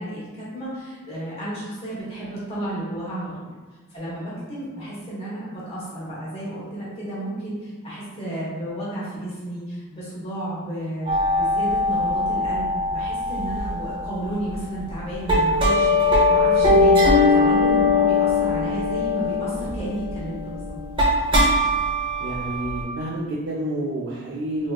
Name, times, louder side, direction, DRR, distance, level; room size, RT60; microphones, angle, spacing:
voice 1, 0.0-3.5 3.9-20.8, right 1 dB, 25° left, -8 dB, 1.0 m, -32 dB
sound 1, 11.0-14.6 14.9-22.8, left 2 dB, 25° right, 0.8 m, -21 dB
voice 2, 22.2-24.7, right 1 dB, 60° right, -6 dB, 0.4 m, -29 dB
3.3 x 2.9 x 2.2 m, 1.4 s
head